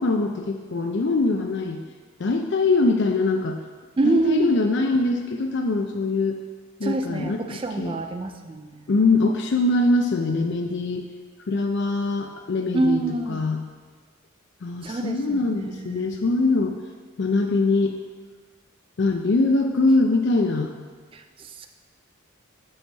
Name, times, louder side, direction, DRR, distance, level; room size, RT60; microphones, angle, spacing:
voice 1, 0.0-1.8 2.2-3.6 4.0-6.4 6.8-8.0 8.9-11.1 11.5-13.0 13.3-13.6 14.6-16.8 17.2-17.9 19.0-20.7, left 3 dB, 55° left, 3 dB, 0.4 m, -22 dB
voice 2, 4.0-4.5 6.8-8.8 12.7-13.4 14.8-16.2 21.1-21.7, right 2 dB, 25° right, 6 dB, 0.3 m, -26 dB
5.7 x 5.5 x 6.1 m, 1.5 s
head